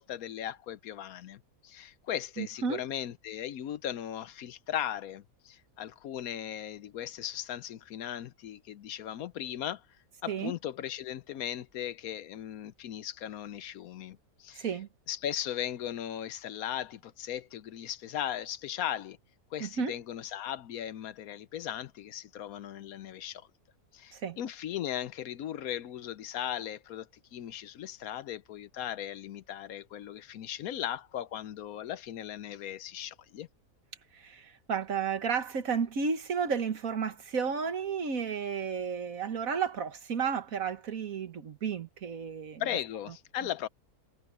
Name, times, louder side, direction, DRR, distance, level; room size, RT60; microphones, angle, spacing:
voice 1, 0.0-9.8 10.2-14.7 15.1-19.2 19.5-23.5 23.9-33.5 42.6-43.7, left 11 dB, 75° left, 1.1 m, -37 dB
voice 2, 2.4-2.8 10.3-10.5 14.6-14.9 19.6-19.9 24.1-24.4 34.1-42.6, right 6 dB, 65° right, 1.8 m, -32 dB
omnidirectional pair, 1.6 m